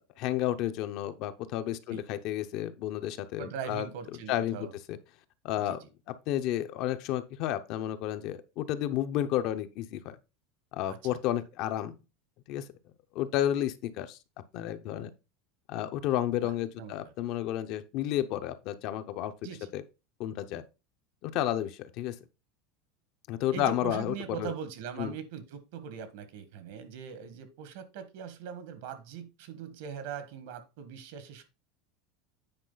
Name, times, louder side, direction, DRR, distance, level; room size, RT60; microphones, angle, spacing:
voice 1, 0.2-3.9 4.3-5.0 5.4-5.8 6.1-10.2 10.7-11.9 12.5-12.6 13.1-14.2 14.5-15.1 15.7-19.3 19.7-19.8 20.2-20.6 21.2-22.1 23.3-24.5 25.0-25.1, left 12 dB, 45° left, 0.7 m, -31 dB
voice 2, 3.4-4.8 5.6-5.9 10.9-11.2 16.4-16.5 16.8-16.9 19.4-19.7 23.5-31.4, right 7 dB, 65° right, 1.5 m, -41 dB
8.8 x 4.9 x 3.9 m
supercardioid pair, 165°, 0 cm